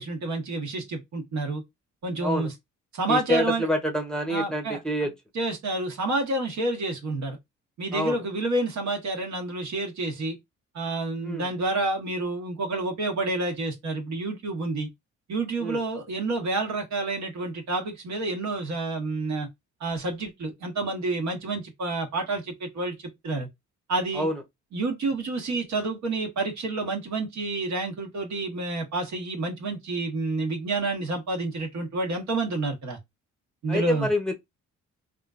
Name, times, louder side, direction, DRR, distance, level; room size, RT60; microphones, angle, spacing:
voice 1, 0.0-1.6 2.0-2.5 2.9-3.7 4.3-7.4 7.8-10.4 10.7-14.9 15.3-19.5 19.8-22.9 23.2-23.5 23.9-24.3 24.7-33.0 33.6-34.1, right 2 dB, 65° right, 1.3 m, -29 dB
voice 2, 3.1-5.1 7.9-8.2 11.2-11.5 15.6-15.8 24.1-24.4 33.7-34.3, equal, ahead, 0.7 m, -27 dB
3.6 x 2.5 x 2.4 m
cardioid pair, 90°, 30 cm